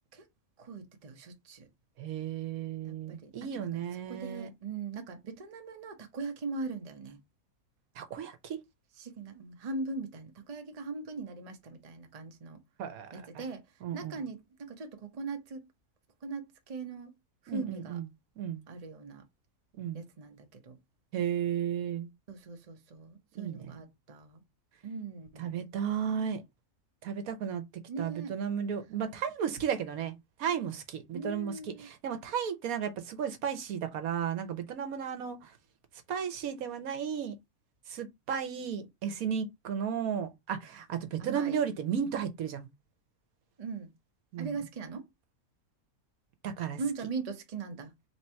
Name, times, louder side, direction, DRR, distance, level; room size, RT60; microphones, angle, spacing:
voice 1, 0.6-1.7 2.8-7.2 9.0-12.6 13.1-13.6 13.9-15.7 16.2-17.1 17.4-18.0 18.7-19.2 19.9-20.8 22.3-24.4 24.8-25.5 27.9-28.4 31.1-31.9 41.2-41.6 43.6-43.9 44.4-45.1 46.8-47.9, right 4 dB, 35° right, 0.8 m, -40 dB
voice 2, 2.0-4.5 8.0-8.6 12.8-13.1 13.8-14.2 17.5-18.0 18.4-18.6 19.8-20.0 21.1-22.1 23.4-23.6 25.4-26.4 27.0-27.6 28.0-35.4 36.1-37.3 37.9-42.7 44.3-44.6 46.4-46.8, right 8 dB, 75° right, 1.2 m, -34 dB
3.3 x 2.9 x 4.3 m
omnidirectional pair, 1.5 m